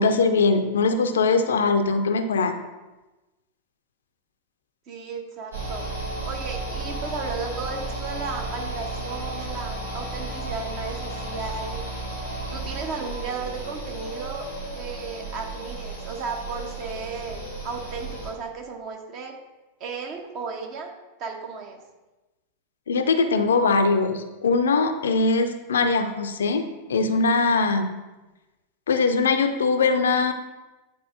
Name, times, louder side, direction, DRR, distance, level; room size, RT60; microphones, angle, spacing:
voice 1, 0.0-2.5 22.9-26.6 26.9-27.9 28.9-30.3, left 4 dB, 65° left, 8 dB, 0.5 m, -21 dB
voice 2, 4.9-5.8 6.3-11.9 12.5-14.5 14.7-19.4 19.8-20.9 21.2-21.8, right 4 dB, 40° right, 2 dB, 1.0 m, -34 dB
sound 1, 5.5-18.3, right 2 dB, 85° right, 1.9 m, -33 dB
9.5 x 4.1 x 2.6 m, 1.1 s
figure-of-eight pair, 90°, 0 cm